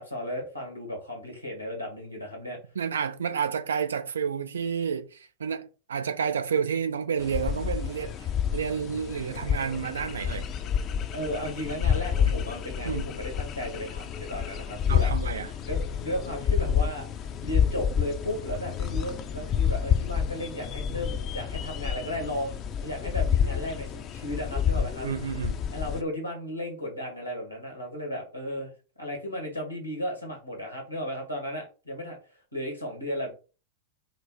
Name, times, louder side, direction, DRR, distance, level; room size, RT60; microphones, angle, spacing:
voice 1, 0.0-2.6 11.1-15.1 15.6-17.1 17.4-25.1 25.7-28.7 29.0-32.2 32.5-33.3, equal, 90° left, 1.6 m, -34 dB
voice 2, 2.8-8.3 8.5-10.5 12.8-13.1 14.9-15.5 25.0-25.6, right 7 dB, 70° right, 0.5 m, -30 dB
sound 1, 7.2-26.0, left 8 dB, 35° left, 0.5 m, -29 dB
5.0 x 2.0 x 4.4 m
figure-of-eight pair, 90°, 0 cm